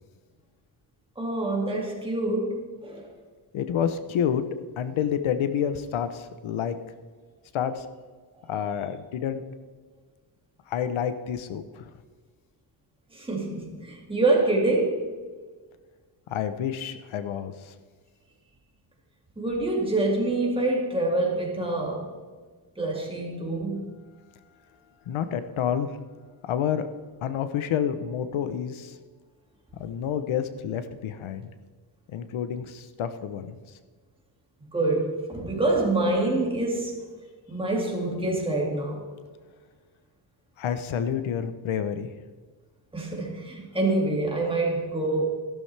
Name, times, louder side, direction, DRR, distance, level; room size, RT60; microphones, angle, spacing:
voice 1, 1.2-3.1 13.1-15.1 19.4-22.1 22.8-23.9 34.7-37.0 37.5-39.0 42.9-45.2, right 2 dB, 10° right, 2.2 m, -26 dB
voice 2, 3.5-4.4 4.8-6.8 7.5-7.8 8.5-9.4 10.7-11.9 16.3-17.7 25.1-25.9 26.4-26.9 27.2-28.9 29.7-31.5 32.1-33.5 40.6-42.1, left 8 dB, 90° left, 0.9 m, -29 dB
14.5 x 12.0 x 3.4 m
wide cardioid pair, 165°, 46 cm